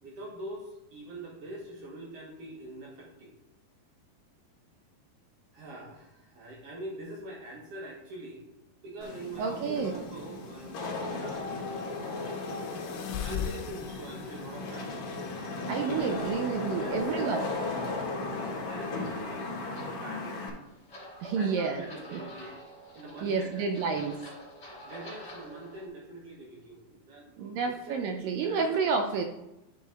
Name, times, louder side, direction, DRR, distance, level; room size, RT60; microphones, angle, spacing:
voice 1, 0.0-3.3 5.5-8.5 8.8-10.8 11.1-11.7 13.2-15.4 15.8-19.5 19.8-20.5 21.4-22.5 22.9-24.1 24.8-28.8, right 2 dB, 60° right, -2 dB, 1.7 m, -44 dB
Wind / Rain, 9.0-20.5, left 3 dB, 60° left, 2.3 m, -36 dB
sound 1, 9.3-19.3, left 8 dB, 80° left, 2.6 m, -44 dB
voice 2, 9.4-9.9 15.7-17.5 21.2-21.8 22.1-22.2 23.2-24.2 27.4-29.2, right 5 dB, 80° right, 4 dB, 2.1 m, -29 dB
sound 2, 19.0-25.9, equal, 25° left, 1.9 m, -48 dB
11.0 x 4.1 x 3.8 m, 0.92 s
omnidirectional pair, 4.4 m